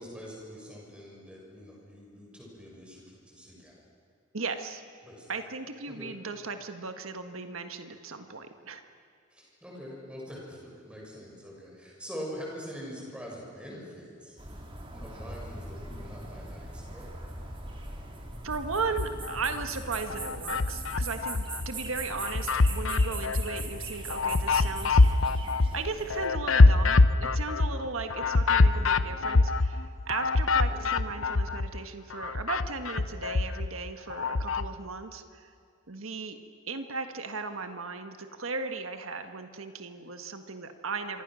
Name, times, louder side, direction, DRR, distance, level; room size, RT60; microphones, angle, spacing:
voice 1, 0.0-3.8 5.0-5.3 5.9-6.1 9.3-14.4 14.9-17.1 30.7-30.9, equal, 5° right, -3 dB, 7.0 m, -44 dB
voice 2, 4.3-4.8 5.3-8.8 18.4-25.2 25.7-35.5 35.9-36.4 36.7-41.2, right 4 dB, 90° right, 7 dB, 1.6 m, -36 dB
sound 1, 14.4-26.3, right 2 dB, 25° right, 3.5 m, -40 dB
sound 2, 18.8-19.7 20.1-21.7 22.1-31.8 32.1-34.7, left 3 dB, 80° left, 0.8 m, -24 dB
27.5 x 25.5 x 6.4 m, 2.4 s
head